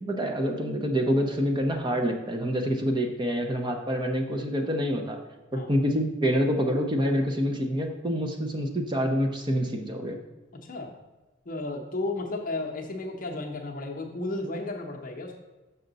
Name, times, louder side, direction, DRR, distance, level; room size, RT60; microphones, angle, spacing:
voice 1, 0.0-5.2 5.5-10.2, equal, 20° right, 4 dB, 0.6 m, -27 dB
voice 2, 10.6-10.9 11.5-15.4, left 2 dB, 40° left, 1 dB, 0.7 m, -33 dB
6.4 x 5.6 x 3.9 m, 1.2 s
head